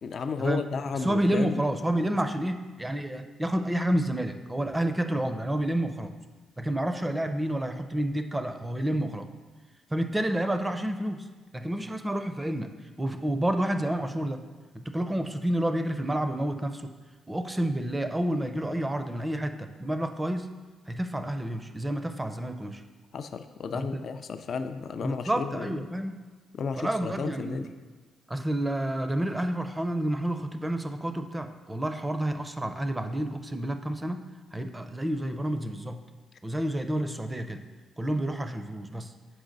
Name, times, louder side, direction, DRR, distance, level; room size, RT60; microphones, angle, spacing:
voice 1, 0.0-1.6 23.1-25.7 26.5-27.7, left 5 dB, 55° left, 9 dB, 0.3 m, -33 dB
voice 2, 1.0-6.2 6.6-9.3 9.9-11.3 11.5-12.7 13.0-14.5 14.7-16.9 17.3-20.5 20.9-22.8 23.8-24.0 25.0-26.2 26.8-27.7 28.3-34.3 34.5-36.0 36.4-37.6 38.0-39.1, right 1 dB, 15° right, 8 dB, 0.4 m, -29 dB
6.3 x 4.7 x 3.9 m, 1.3 s
cardioid pair, 90°, 0 cm